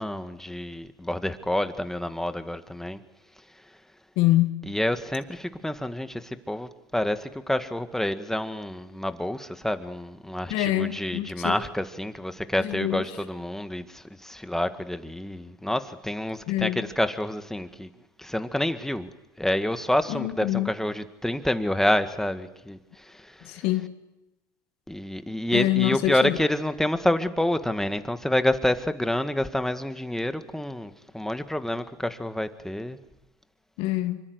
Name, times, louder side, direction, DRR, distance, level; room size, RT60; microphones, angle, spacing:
voice 1, 0.0-3.0 4.7-17.9 18.2-19.1 19.4-22.8 23.1-23.3 24.9-33.0, left 1 dB, 5° left, 1.9 m, -28 dB
voice 2, 4.2-4.5 10.5-11.6 12.6-13.2 16.5-16.9 20.1-20.7 23.4-23.9 25.5-26.4 33.8-34.2, left 16 dB, 65° left, 1.8 m, -25 dB
25.5 x 25.5 x 8.1 m
hypercardioid pair, 85°, 10 cm